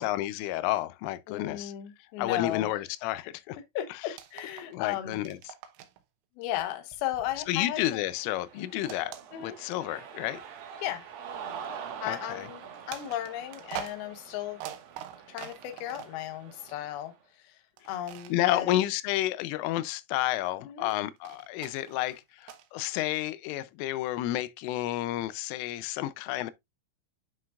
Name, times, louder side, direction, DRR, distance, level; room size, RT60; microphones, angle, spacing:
voice 1, 0.0-1.7 2.2-3.6 4.6-5.4 7.5-10.4 12.0-12.5 18.3-26.5, left 15 dB, 90° left, 3.2 m, -31 dB
voice 2, 1.3-2.7 3.7-5.2 6.4-8.0 9.3-9.6 10.8-11.1 12.0-14.6 15.3-17.1 17.4-17.6 17.9-18.8 20.6-20.9, left 12 dB, 70° left, 2.4 m, -35 dB
sound 1, 4.0-4.8 5.1-6.0 6.6-8.0 8.8-9.9 10.6-10.7 12.9-16.3 17.8-18.4 20.9-22.7, right 10 dB, 85° right, 3.4 m, -44 dB
Cheering, 7.9-17.1, right 7 dB, 65° right, 2.7 m, -45 dB
9.9 x 5.8 x 2.4 m
omnidirectional pair, 5.6 m